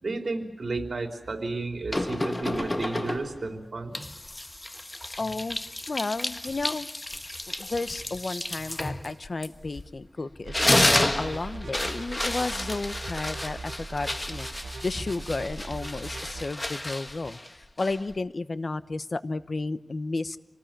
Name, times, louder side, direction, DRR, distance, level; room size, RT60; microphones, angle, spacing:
voice 1, 0.0-4.0, right 3 dB, 65° right, 4 dB, 3.5 m, -32 dB
sound 1, 1.9-3.4 3.9-10.0 10.3-18.2, left 1 dB, 25° left, 1.3 m, -31 dB
voice 2, 5.2-5.6 5.9-6.9 7.5-14.5 14.8-17.4 17.8-20.4, left 3 dB, 55° left, 13 dB, 1.0 m, -32 dB
sound 2, 10.4-16.4, right 3 dB, 85° right, 1.2 m, -40 dB
27.0 x 19.0 x 8.9 m, 0.99 s
wide cardioid pair, 85°, 0 cm